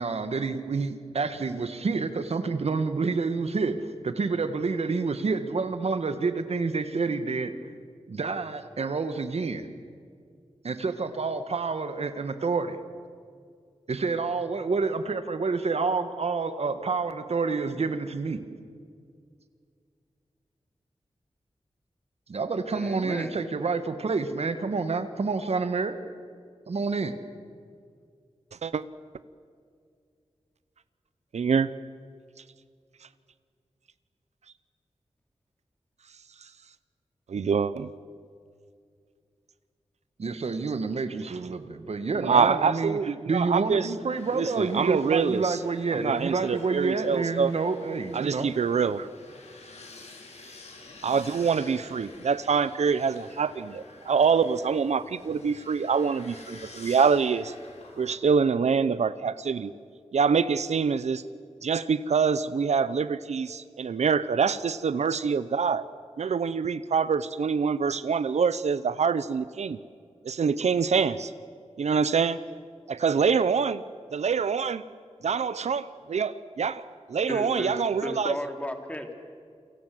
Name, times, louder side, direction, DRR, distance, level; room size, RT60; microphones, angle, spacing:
voice 1, 0.0-7.5 8.1-9.7 10.6-12.8 13.9-18.4 22.3-26.0 26.7-27.1 40.2-43.0 43.3-48.5, right 4 dB, 65° right, 10 dB, 1.7 m, -28 dB
voice 2, 22.7-23.4 77.3-79.1, left 1 dB, 10° left, 5 dB, 3.0 m, -34 dB
voice 3, 31.3-31.7 37.3-37.9 42.1-43.9 44.3-45.6 45.9-47.5 48.1-49.1 51.0-57.5 58.0-59.7 60.1-61.2 61.6-65.9 66.2-69.8 70.2-71.3 71.8-72.4 72.9-73.8 74.1-74.8 75.2-76.8 77.1-78.3, right 6 dB, 85° right, 15 dB, 0.7 m, -25 dB
sound 1, 44.1-58.1, left 2 dB, 80° left, 4.9 m, -48 dB
28.5 x 24.0 x 7.8 m, 2.2 s
wide cardioid pair, 100°, 11 cm